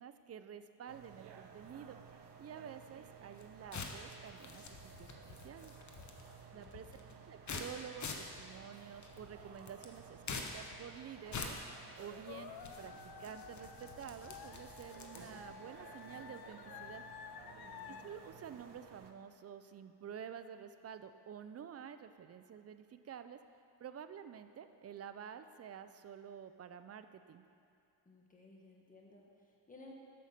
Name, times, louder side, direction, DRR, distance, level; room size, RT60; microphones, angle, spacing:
voice 1, 0.0-2.0 2.4-5.7 6.5-6.9 7.3-11.6 12.0-12.9 13.2-17.0 17.9-23.4 23.8-27.4, right 8 dB, 40° right, 10 dB, 0.4 m, -50 dB
sound 1, 0.9-19.1, right 6 dB, 75° right, 0.8 m, -56 dB
sound 2, 3.3-15.5, left 4 dB, 45° left, 0.9 m, -48 dB
voice 2, 6.5-7.2 17.6-18.1 28.0-30.0, left 2 dB, 20° left, -1 dB, 1.4 m, -59 dB
sound 3, 12.3-18.0, left 9 dB, 65° left, 0.5 m, -52 dB
8.5 x 6.3 x 5.8 m, 2.6 s
cardioid pair, 115°, 41 cm